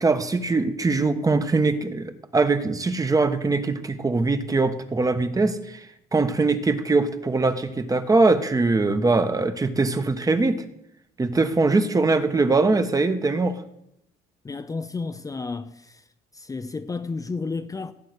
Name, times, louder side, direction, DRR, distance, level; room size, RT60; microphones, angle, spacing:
voice 1, 0.0-5.9 6.1-10.6 11.2-13.6, right 3 dB, 20° right, 1.2 m, -22 dB
voice 2, 14.4-16.0 16.3-17.9, left 4 dB, 20° left, 0.7 m, -32 dB
16.0 x 8.5 x 6.6 m
cardioid pair, 110°, 17 cm